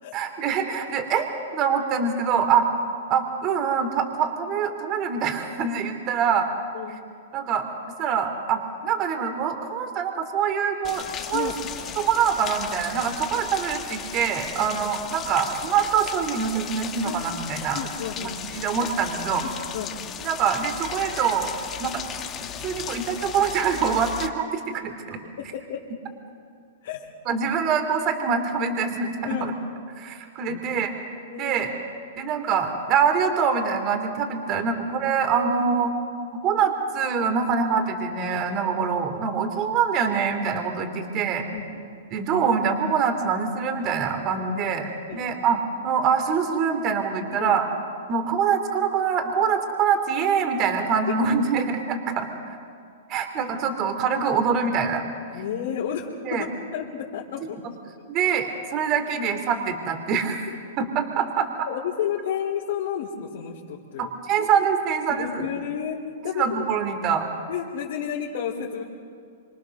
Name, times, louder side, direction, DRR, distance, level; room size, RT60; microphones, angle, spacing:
voice 1, 0.1-1.3 1.5-2.7 3.1-6.5 7.3-7.6 8.0-11.5 12.0-17.8 18.5-19.5 20.2-21.5 21.8-22.0 22.6-25.2 27.2-29.5 30.0-30.9 31.3-31.7 32.1-35.9 36.4-41.4 42.1-47.6 48.1-52.6 53.1-55.0 56.2-56.5 58.1-60.5 60.8-61.7 64.0-65.5 66.3-67.3, right 6 dB, 35° right, 6 dB, 3.3 m, -24 dB
Rain, 10.8-24.3, left 9 dB, 30° left, 2.0 m, -36 dB
voice 2, 17.7-18.6 19.4-20.0 25.4-25.8 26.8-27.1 29.3-29.5 30.5-30.9 31.3-31.6 34.5-34.7 41.5-41.8 44.4-44.5 45.1-45.2 47.3-47.5 55.3-57.6 61.7-64.1 64.4-64.5 65.1-66.6 67.5-68.8, left 8 dB, 60° left, -3 dB, 3.7 m, -32 dB
26.0 x 26.0 x 6.7 m, 2.3 s
hypercardioid pair, 125°, 0 cm